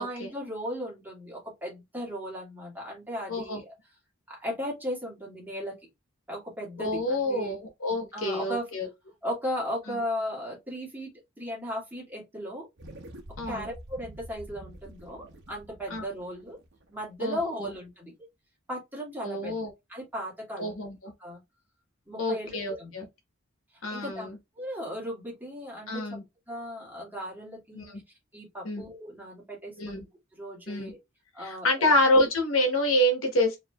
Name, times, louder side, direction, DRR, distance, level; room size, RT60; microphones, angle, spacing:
voice 1, 0.0-3.7 4.3-5.8 6.3-7.6 8.1-8.7 9.2-12.7 13.5-16.6 16.9-18.1 18.7-19.6 19.9-20.7 21.2-21.4 22.1-22.9 23.7-24.3 24.6-26.2 26.5-27.9 28.3-30.1 30.3-31.0 31.3-31.9, equal, 10° right, 2.1 m, -36 dB
voice 2, 3.3-3.6 6.8-8.9 13.4-13.7 15.9-16.0 17.2-17.7 19.2-19.7 20.6-21.1 22.2-23.1 23.8-24.4 25.9-26.2 27.7-28.0 28.6-28.8 29.8-30.1 30.7-30.9 31.4-33.6, left 1 dB, 75° left, 1.3 m, -27 dB
sound 1, 12.8-17.4, right 1 dB, 55° right, 1.0 m, -47 dB
4.7 x 3.1 x 2.4 m
head